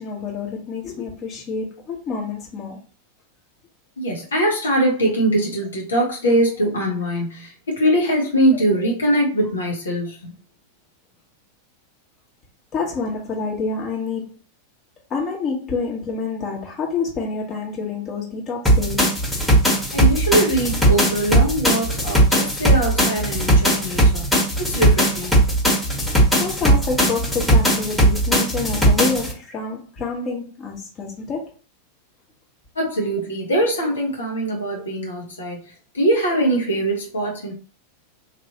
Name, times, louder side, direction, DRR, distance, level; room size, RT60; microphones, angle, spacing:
voice 1, 0.0-2.8 8.5-8.9 12.7-14.4 15.1-19.1 26.4-31.5, left 4 dB, 30° left, 1.1 m, -28 dB
voice 2, 4.0-10.3 19.9-24.3 24.6-25.5 32.7-37.5, right 1 dB, 70° left, 1.0 m, -22 dB
sound 1, 18.7-29.3, right 1 dB, 5° left, 1.2 m, -18 dB
3.2 x 2.6 x 2.8 m
figure-of-eight pair, 90°, 0 cm